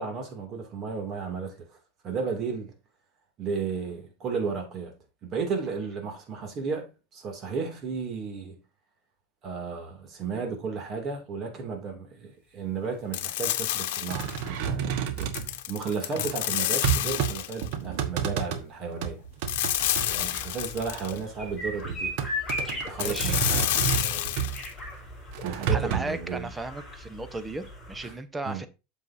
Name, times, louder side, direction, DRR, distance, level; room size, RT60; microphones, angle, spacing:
voice 1, 0.0-1.7 2.0-2.7 3.4-8.6 9.4-15.3 15.7-19.2 20.1-22.1 22.7-24.5 25.4-26.5 28.0-28.2 28.4-28.6, right 5 dB, 35° right, 2.5 m, -34 dB
sound 1, 13.1-14.5 15.2-17.7 19.5-21.2 23.0-24.7, left 14 dB, 75° left, 1.0 m, -29 dB
sound 2, 14.1-15.5 16.2-17.3 17.6-18.6 19.0-20.1 20.5-21.1 21.8-24.6 25.3-26.0, right 8 dB, 60° right, 1.3 m, -30 dB
sound 3, 19.7-28.1, left 1 dB, 5° left, 4.8 m, -38 dB
voice 2, 23.0-23.4 25.7-28.7, right 2 dB, 10° right, 0.8 m, -35 dB
8.0 x 7.2 x 2.7 m
supercardioid pair, 145°, 0 cm